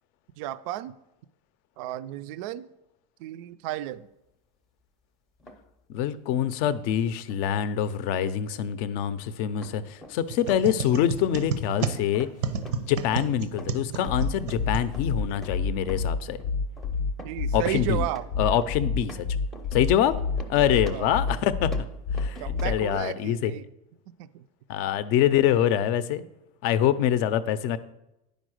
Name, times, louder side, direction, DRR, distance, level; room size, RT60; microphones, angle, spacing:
voice 1, 0.4-0.9 1.8-2.7 3.2-4.1 17.2-18.2 20.6-21.1 22.4-23.6 24.2-24.4, right 14 dB, 60° right, 14 dB, 0.4 m, -33 dB
sound 1, 5.4-5.7 7.3-7.5 8.4-8.5 9.5-22.6, left 1 dB, ahead, 0.6 m, -46 dB
voice 2, 5.9-12.3 12.8-16.4 17.5-18.0 18.4-19.3 19.7-20.1 20.5-21.7 22.1-23.5 24.7-26.2 26.6-27.8, left 10 dB, 45° left, 14 dB, 0.5 m, -25 dB
sound 2, 10.3-15.4, right 5 dB, 90° right, 0.9 m, -32 dB
sound 3, 14.1-23.0, left 4 dB, 85° left, 0.6 m, -28 dB
9.7 x 5.2 x 6.3 m, 0.88 s
supercardioid pair, 165°, 20 cm